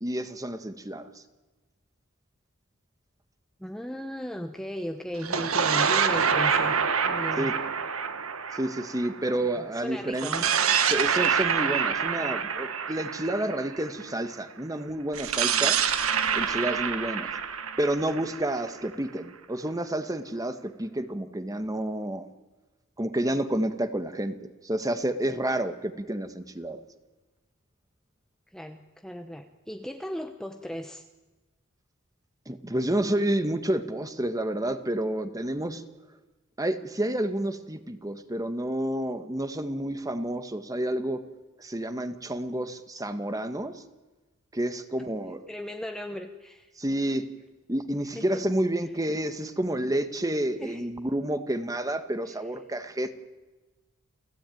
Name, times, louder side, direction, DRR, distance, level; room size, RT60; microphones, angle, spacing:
voice 1, 0.0-1.2 7.4-7.5 8.5-10.3 10.9-15.8 16.3-17.3 17.8-22.3 23.0-24.4 24.6-26.8 32.5-35.8 36.6-41.2 41.6-43.8 44.5-45.4 46.8-47.3 47.7-53.2, right 1 dB, 15° right, 9 dB, 1.5 m, -29 dB
voice 2, 3.6-6.8 7.0-7.5 9.6-10.5 28.5-31.1 45.3-46.7 48.1-48.4 50.6-50.9, equal, ahead, 5 dB, 1.0 m, -36 dB
sound 1, 5.2-9.6 10.1-14.1 15.1-18.9, right 7 dB, 85° right, 1.7 m, -26 dB
29.5 x 16.5 x 9.3 m, 1.2 s
head